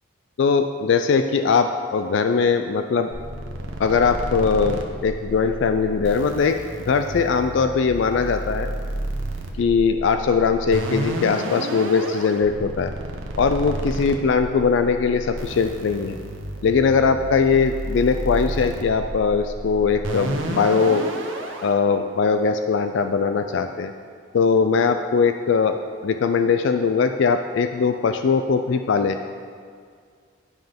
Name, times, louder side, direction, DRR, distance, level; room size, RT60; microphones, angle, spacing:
voice 1, 0.4-3.1 3.8-6.6 6.8-8.7 9.6-12.9 13.4-16.2 16.6-21.1 21.6-23.9 24.3-29.2, left 5 dB, 65° left, 8 dB, 0.3 m, -20 dB
sound 1, 3.1-21.7, right 1 dB, 70° right, 0.9 m, -31 dB
9.8 x 5.8 x 5.2 m, 2.1 s
head